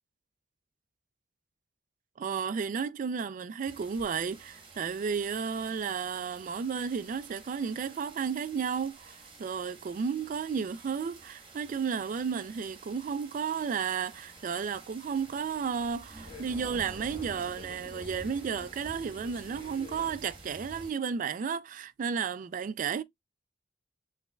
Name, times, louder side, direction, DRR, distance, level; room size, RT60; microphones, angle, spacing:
voice 1, 2.2-23.0, right 6 dB, 45° right, 0.3 m, -33 dB
sound 1, 3.7-20.9, right 2 dB, 30° right, 1.3 m, -50 dB
sound 2, 13.5-20.1, left 2 dB, 25° left, 2.2 m, -52 dB
5.3 x 3.2 x 2.2 m
head